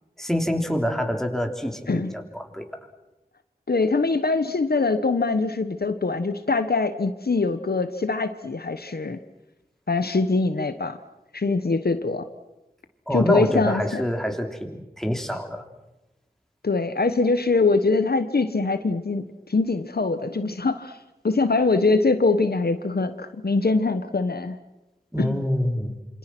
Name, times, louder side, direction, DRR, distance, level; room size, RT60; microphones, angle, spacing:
voice 1, 0.2-2.7 13.1-15.6 25.1-26.0, equal, ahead, 4 dB, 3.6 m, -26 dB
voice 2, 3.7-9.2 9.9-11.0 11.3-12.3 13.1-14.0 16.6-21.0 21.2-24.6 25.2-25.4, left 3 dB, 70° left, 10 dB, 1.3 m, -23 dB
27.0 x 26.0 x 6.2 m, 0.99 s
wide cardioid pair, 45°, 17 cm